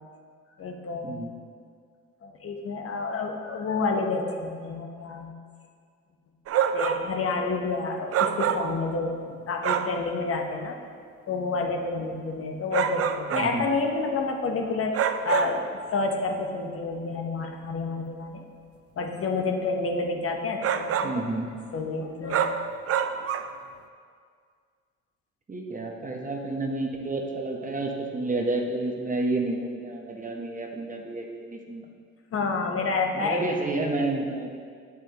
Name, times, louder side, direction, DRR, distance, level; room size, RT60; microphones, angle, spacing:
voice 1, 0.6-1.1 2.2-5.3 6.5-10.8 11.3-18.4 19.0-21.1 21.7-22.7 32.3-33.4, left 3 dB, 50° left, 2 dB, 0.9 m, -29 dB
sound 1, 6.5-7.1 8.1-8.8 9.6-10.0 12.7-13.6 14.9-15.7 20.6-21.2 22.3-23.6, right 8 dB, 50° right, 0.4 m, -26 dB
voice 2, 13.3-13.7 21.0-21.5 25.5-31.9 33.1-34.6, right 2 dB, 25° right, 1 dB, 0.9 m, -30 dB
7.4 x 7.3 x 2.9 m, 2.1 s
cardioid pair, 90°, 30 cm